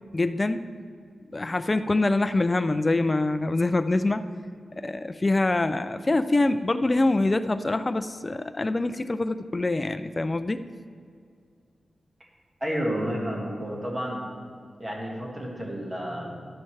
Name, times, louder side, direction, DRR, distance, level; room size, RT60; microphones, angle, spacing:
voice 1, 0.1-0.7 1.3-4.2 4.7-10.6, left 2 dB, 25° left, 10 dB, 0.3 m, -25 dB
voice 2, 12.6-14.2 14.8-16.3, equal, 20° right, -2 dB, 1.7 m, -30 dB
12.0 x 8.8 x 3.3 m, 2.2 s
wide cardioid pair, 145°, 0 cm